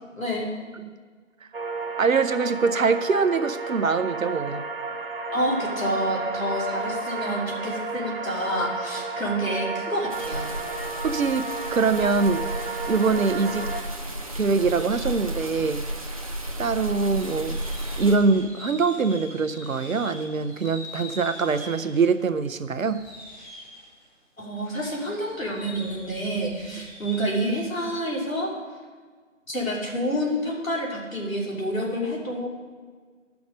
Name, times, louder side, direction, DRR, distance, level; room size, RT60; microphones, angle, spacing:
voice 1, 0.2-0.5 5.3-10.5 24.4-28.5 29.5-32.5, equal, 85° left, -3 dB, 2.9 m, -28 dB
sound 1, 1.5-13.8, right 3 dB, 45° right, 1.1 m, -32 dB
voice 2, 2.0-4.6 11.0-12.5 12.9-13.8 14.3-15.9 16.6-17.6 18.0-23.0, right 4 dB, 85° right, 11 dB, 0.7 m, -23 dB
sound 2, 10.1-18.2, right 1 dB, 30° right, 0.6 m, -33 dB
sound 3, 14.7-15.3 16.1-16.2 16.9-22.2 22.5-24.1 24.6-27.4, left 1 dB, 5° left, 3.4 m, -44 dB
14.0 x 5.9 x 5.2 m, 1.5 s
figure-of-eight pair, 155°, 39 cm